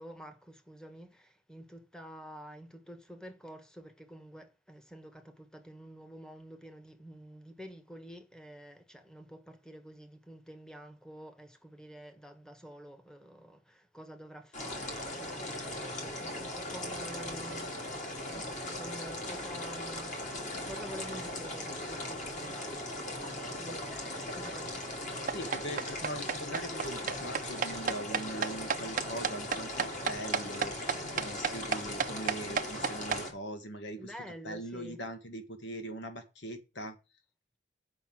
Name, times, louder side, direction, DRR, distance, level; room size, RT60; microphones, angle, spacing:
voice 1, 0.0-20.2 20.6-25.0 34.0-35.0, equal, 5° left, 1.2 m, -49 dB
sound 1, 14.5-33.3, left 1 dB, 40° left, 2.7 m, -39 dB
voice 2, 25.3-34.1 34.4-37.0, right 1 dB, 75° left, 1.7 m, -41 dB
sound 2, 25.3-33.2, right 6 dB, 45° right, 0.6 m, -31 dB
7.9 x 5.5 x 7.7 m
head